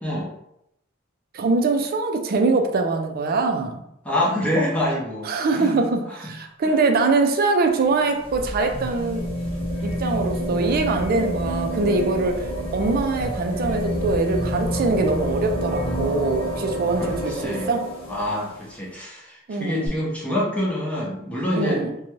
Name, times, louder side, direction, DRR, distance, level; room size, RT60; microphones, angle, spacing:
voice 1, 1.3-3.8 5.2-9.3 9.8-17.9 19.5-19.9 21.5-21.9, right 3 dB, 50° right, 4 dB, 0.4 m, -23 dB
voice 2, 4.0-5.8 6.1-6.3 6.6-6.8 17.0-17.7 18.1-21.8, left 1 dB, 5° left, -4 dB, 0.6 m, -26 dB
sound 1, 7.7-18.7 19.9-20.0, equal, 25° left, 0.9 m, -28 dB
2.6 x 2.2 x 3.0 m, 0.79 s
head